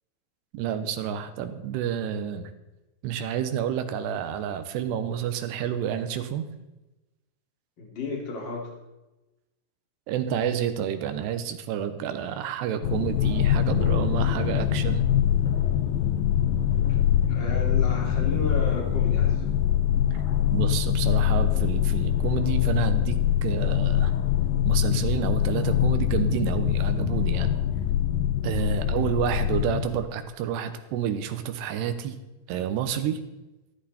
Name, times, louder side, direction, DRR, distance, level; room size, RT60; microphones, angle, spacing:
voice 1, 0.5-2.5 3.0-6.4 10.1-15.0 20.5-24.1 24.6-27.5 28.4-32.2 32.5-33.2, right 8 dB, 85° right, 9 dB, 3.1 m, -29 dB
voice 2, 7.8-8.7 16.9-17.0 17.3-19.4 28.7-29.0, left 2 dB, 30° left, 0 dB, 3.1 m, -34 dB
sound 1, 12.8-30.0, left 10 dB, 80° left, 2.1 m, -24 dB
14.0 x 13.0 x 4.3 m, 1.0 s
omnidirectional pair, 4.7 m